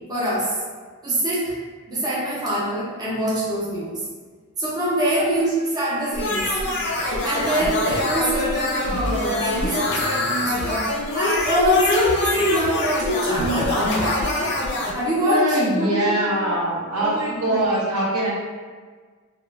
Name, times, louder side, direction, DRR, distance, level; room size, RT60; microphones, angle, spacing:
voice 1, 0.1-0.6 1.0-1.5 1.9-4.0 4.6-14.3 14.9-16.5 16.9-17.8, equal, 20° right, -9 dB, 0.6 m, -24 dB
sound 1, 6.1-14.9, left 2 dB, 50° left, 0.4 m, -25 dB
voice 2, 15.2-18.3, right 1 dB, 75° right, -6 dB, 0.8 m, -22 dB
2.4 x 2.1 x 3.1 m, 1.5 s
head